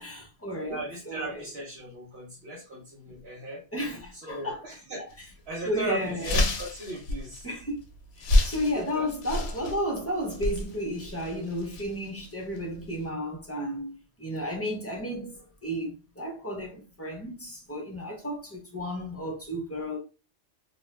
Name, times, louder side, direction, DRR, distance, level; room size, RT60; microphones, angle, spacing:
voice 1, 0.0-0.8 1.1-1.4 3.0-3.2 3.7-4.6 5.0-5.1 5.7-6.4 7.4-7.8 8.2-20.0, equal, 15° left, 0.5 m, -33 dB
voice 2, 0.6-3.6 4.1-7.5 8.5-9.1, right 1 dB, 60° right, 0.9 m, -38 dB
sound 1, 5.1-5.3 5.7-5.8 6.0-13.1, left 2 dB, 70° left, 0.8 m, -30 dB
2.3 x 2.3 x 3.1 m
omnidirectional pair, 1.2 m